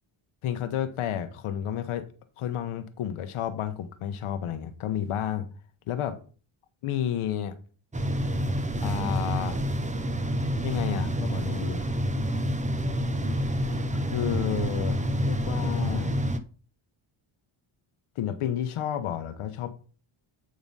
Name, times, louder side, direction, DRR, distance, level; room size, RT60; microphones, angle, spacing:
voice 1, 0.4-2.1 2.4-5.5 5.9-6.2 6.8-7.6 8.8-9.6 10.6-11.8 14.1-16.2 18.2-19.7, left 10 dB, 80° left, 1.0 m, -31 dB
sound 1, 7.9-16.4, equal, 15° right, 0.7 m, -28 dB
8.3 x 3.9 x 5.4 m
cardioid pair, 100°, 50 cm